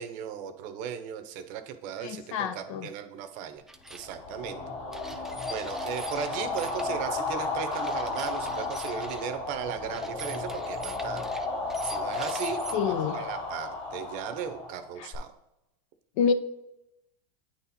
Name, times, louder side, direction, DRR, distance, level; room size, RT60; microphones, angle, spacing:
voice 1, 0.0-3.6 3.9-4.6 5.2-11.3 11.8-15.3, right 8 dB, 50° right, 9 dB, 0.7 m, -37 dB
voice 2, 2.0-2.9 12.7-13.2 15.0-15.1 16.2-16.3, left 6 dB, 65° left, 11 dB, 0.7 m, -28 dB
sound 1, 3.7-4.1 4.9-6.9 7.7-9.3 9.9-12.7, right 2 dB, ahead, 0.3 m, -43 dB
sound 2, 4.0-15.2, left 3 dB, 35° left, 2.4 m, -33 dB
8.9 x 4.2 x 4.2 m, 0.89 s
supercardioid pair, 140°, 18 cm